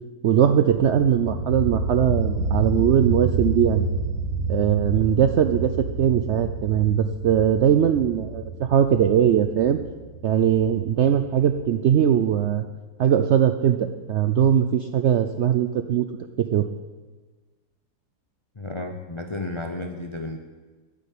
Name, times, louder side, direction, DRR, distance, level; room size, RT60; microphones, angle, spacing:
voice 1, 0.2-3.9 4.5-9.8 10.2-12.6 13.0-13.8 14.1-16.0 16.4-16.7, right 9 dB, 70° right, 8 dB, 0.6 m, -20 dB
sound 1, 0.7-12.3, right 3 dB, 90° right, 1.6 m, -29 dB
voice 2, 18.6-20.4, left 2 dB, 45° left, 5 dB, 0.4 m, -32 dB
9.5 x 7.5 x 9.3 m, 1.3 s
omnidirectional pair, 1.8 m